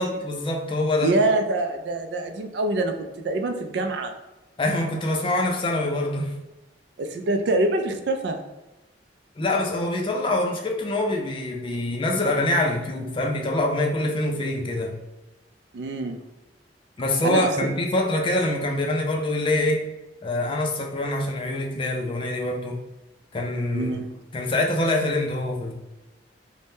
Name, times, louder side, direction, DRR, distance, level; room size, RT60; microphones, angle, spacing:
voice 1, 0.0-1.1 4.6-6.4 9.4-14.9 17.0-19.8 20.2-22.8 23.3-23.9 24.3-25.7, left 1 dB, 30° left, 1 dB, 0.4 m, -25 dB
voice 2, 1.0-4.1 7.0-8.4 15.7-16.2 17.2-17.7 23.7-24.1, right 2 dB, 65° right, 6 dB, 0.4 m, -25 dB
2.7 x 2.1 x 3.4 m, 1.0 s
head